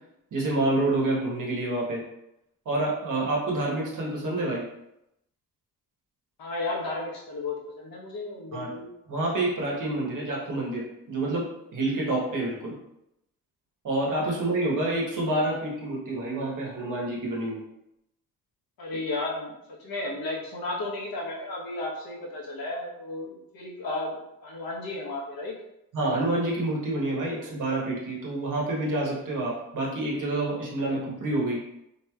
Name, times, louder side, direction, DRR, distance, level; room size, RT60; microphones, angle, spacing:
voice 1, 0.3-2.0 2.6-4.6 8.5-8.7 9.1-11.5 11.7-12.7 13.8-17.6 25.9-31.6, right 2 dB, 55° right, -3 dB, 1.1 m, -28 dB
voice 2, 6.4-8.9 14.3-14.5 18.8-25.5 27.2-27.6 30.9-31.0, left 2 dB, 70° left, -2 dB, 1.0 m, -34 dB
2.9 x 2.8 x 2.3 m, 0.84 s
supercardioid pair, 60°, 37 cm